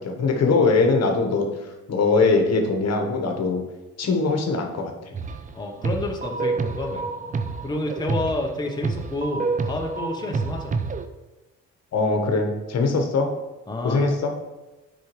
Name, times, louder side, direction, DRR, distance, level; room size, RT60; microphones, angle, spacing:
voice 1, 0.0-1.5 1.9-3.6 4.0-5.1 11.9-13.3 13.8-14.3, left 3 dB, 55° left, 4 dB, 1.1 m, -21 dB
sound 1, 5.1-5.5 5.8-11.1, right 4 dB, 25° right, 0.5 m, -28 dB
voice 2, 5.5-7.1 7.6-10.7 13.7-14.0, left 2 dB, 15° left, 1 dB, 0.8 m, -29 dB
7.7 x 4.9 x 3.1 m, 1.1 s
cardioid pair, 90°, 30 cm